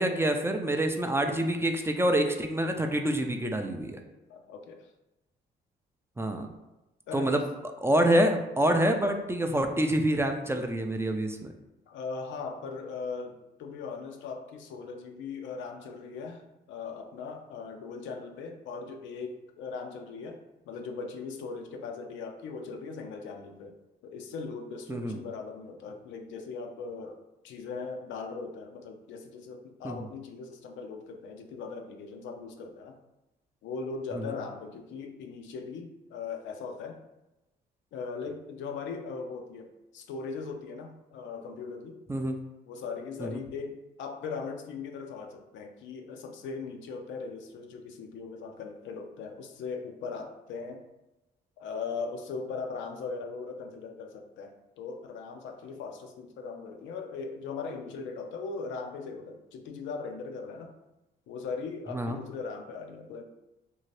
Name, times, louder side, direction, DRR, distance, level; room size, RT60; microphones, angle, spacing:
voice 1, 0.0-4.0 6.2-6.5 7.1-7.4 7.8-11.5 24.9-25.2 29.8-30.1 34.1-34.3 42.1-42.4 43.2-43.4 61.9-62.2, right 1 dB, 15° right, 4 dB, 0.4 m, -27 dB
voice 2, 4.3-4.9 7.1-7.4 11.9-16.4 16.7-23.8 24.0-27.2 27.4-33.0 33.6-37.0 37.9-42.0 42.7-50.8 51.6-60.7 61.3-63.2, left 4 dB, 80° left, 4 dB, 0.5 m, -39 dB
2.7 x 2.4 x 3.2 m, 0.99 s
supercardioid pair, 70°, 19 cm